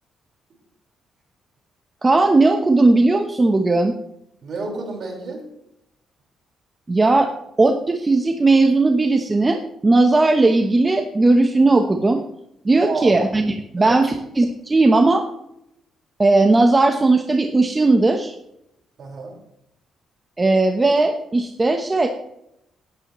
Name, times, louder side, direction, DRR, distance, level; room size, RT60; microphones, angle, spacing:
voice 1, 2.0-3.9 6.9-7.3 7.6-12.2 12.6-15.2 16.2-18.3 20.4-22.1, right 2 dB, 25° right, 5 dB, 1.0 m, -17 dB
voice 2, 4.4-5.4 12.8-13.2 13.8-14.0 19.0-19.3, right 4 dB, 55° right, 0 dB, 4.8 m, -29 dB
18.0 x 8.7 x 3.1 m, 0.81 s
cardioid pair, 90°, 0 cm